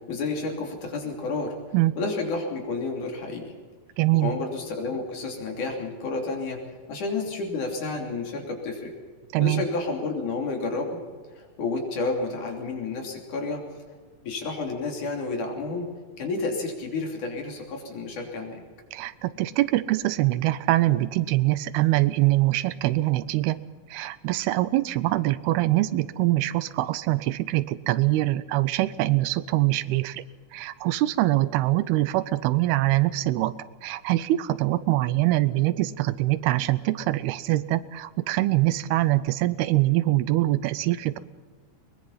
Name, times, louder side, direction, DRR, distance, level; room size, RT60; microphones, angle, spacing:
voice 1, 0.1-1.6 2.0-3.5 4.2-6.6 6.9-8.9 9.4-11.0 11.4-13.6 14.2-15.9 16.2-18.6, left 3 dB, 55° left, 2 dB, 4.3 m, -30 dB
voice 2, 4.0-4.3 9.3-9.6 18.9-23.6 23.9-30.2 30.5-33.5 33.8-41.2, right 17 dB, 90° right, 16 dB, 2.7 m, -23 dB
22.5 x 21.0 x 5.7 m, 1.5 s
omnidirectional pair, 4.4 m